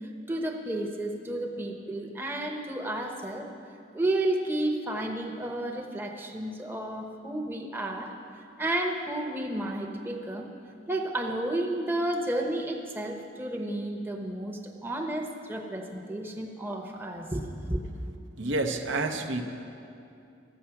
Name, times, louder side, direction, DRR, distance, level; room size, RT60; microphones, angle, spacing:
voice 1, 0.3-3.5 3.9-8.1 8.6-10.5 10.9-17.8, right 1 dB, 10° right, 1 dB, 0.8 m, -32 dB
voice 2, 18.4-19.5, right 2 dB, 70° right, 5 dB, 0.8 m, -29 dB
13.0 x 8.4 x 5.7 m, 2.6 s
head